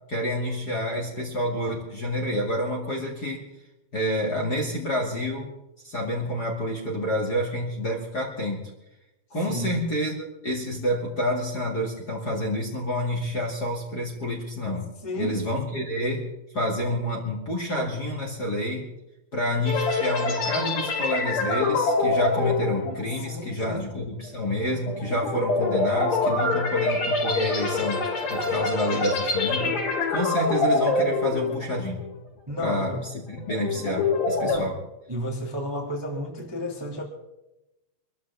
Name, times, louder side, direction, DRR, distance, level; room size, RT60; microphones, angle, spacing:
voice 1, 0.1-3.4 3.9-5.5 5.8-8.6 9.3-14.9 15.1-16.3 16.5-18.9 19.3-28.0 28.3-29.8 30.1-32.0 32.6-34.7, equal, 30° left, -1 dB, 2.3 m, -28 dB
voice 2, 15.0-15.4 23.2-23.9 32.5-33.1 34.4-34.7 35.1-37.0, equal, 10° right, -2 dB, 2.0 m, -32 dB
sound 1, 19.7-32.2 32.5-32.8 33.2-34.6, left 3 dB, 75° left, 5.3 m, -26 dB
25.5 x 13.5 x 3.5 m, 0.92 s
omnidirectional pair, 4.1 m